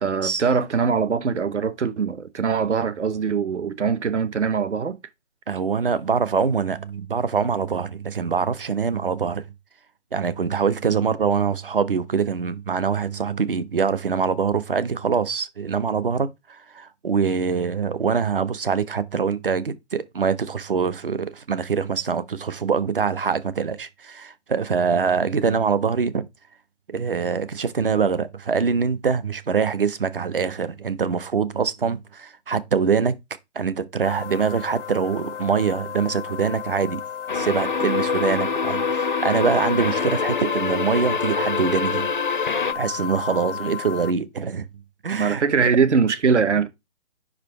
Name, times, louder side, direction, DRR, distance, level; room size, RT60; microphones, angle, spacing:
voice 1, 0.0-5.0 45.1-46.7, right 5 dB, 75° right, 1.0 m, -22 dB
voice 2, 5.5-9.4 10.1-26.3 26.9-33.1 33.5-37.0 37.3-44.7 45.0-45.4, right 6 dB, 50° right, 0.7 m, -24 dB
sound 1, 34.0-44.1, left 9 dB, 85° left, 0.7 m, -33 dB
sound 2, 37.3-42.7, left 5 dB, 45° left, 0.5 m, -25 dB
5.4 x 4.9 x 4.6 m
hypercardioid pair, 180°, 35 cm